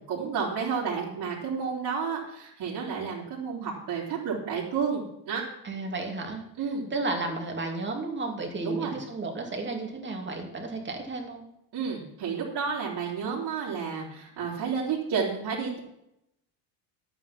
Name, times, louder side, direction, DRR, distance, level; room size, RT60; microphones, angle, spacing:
voice 1, 0.0-5.4 6.6-6.9 8.6-8.9 11.7-15.8, right 6 dB, 55° right, -7 dB, 3.6 m, -31 dB
voice 2, 5.6-6.4 6.9-11.4, right 3 dB, 25° right, 2 dB, 2.7 m, -33 dB
11.0 x 9.1 x 5.9 m, 0.82 s
cardioid pair, 110°, 44 cm